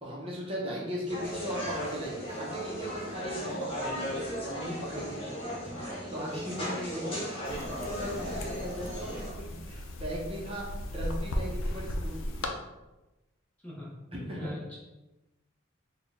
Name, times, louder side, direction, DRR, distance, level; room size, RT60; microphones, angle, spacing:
voice 1, 0.0-10.6 10.9-12.5 14.1-14.5, equal, 25° right, -4 dB, 0.8 m, -38 dB
sound 1, 1.1-9.3, equal, 25° left, 0.9 m, -36 dB
sound 2, 7.5-12.5, left 1 dB, 75° left, 0.5 m, -36 dB
voice 2, 14.4-14.8, left 1 dB, 5° left, -6 dB, 0.6 m, -41 dB
4.2 x 2.2 x 3.4 m, 1.0 s
head